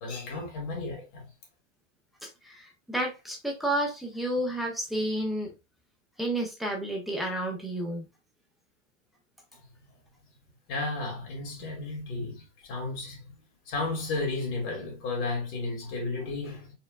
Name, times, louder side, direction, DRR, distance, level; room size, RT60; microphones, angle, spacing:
voice 1, 0.0-1.3 10.7-13.3 13.7-16.7, left 3 dB, 45° left, 2.1 m, -33 dB
voice 2, 2.4-5.5 6.2-8.0, right 1 dB, ahead, 0.3 m, -31 dB
4.5 x 3.2 x 2.3 m
supercardioid pair, 165°, 36 cm